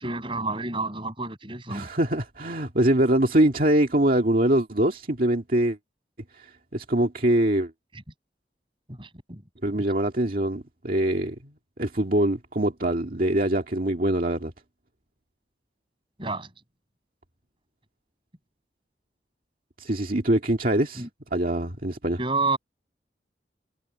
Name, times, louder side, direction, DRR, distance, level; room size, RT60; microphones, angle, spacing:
voice 1, 0.0-1.9 7.9-8.0 8.9-9.4 9.7-9.8 16.2-16.5 21.0-21.1 22.2-22.6, right 3 dB, 30° right, 7.1 m, -30 dB
voice 2, 1.7-5.8 6.3-7.7 9.6-11.5 11.8-14.5 19.8-22.2, right 1 dB, 50° right, 2.1 m, -23 dB
head